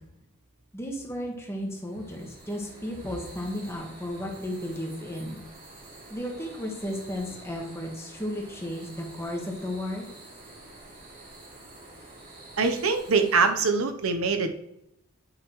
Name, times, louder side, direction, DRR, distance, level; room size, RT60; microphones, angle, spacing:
voice 1, 0.7-5.4 6.1-10.1, left 1 dB, 10° left, 0 dB, 1.2 m, -34 dB
sound 1, 1.6-13.5, right 2 dB, 40° right, 1.9 m, -48 dB
voice 2, 12.6-14.5, right 4 dB, 75° right, 7 dB, 0.8 m, -23 dB
8.9 x 5.7 x 3.0 m, 0.81 s
head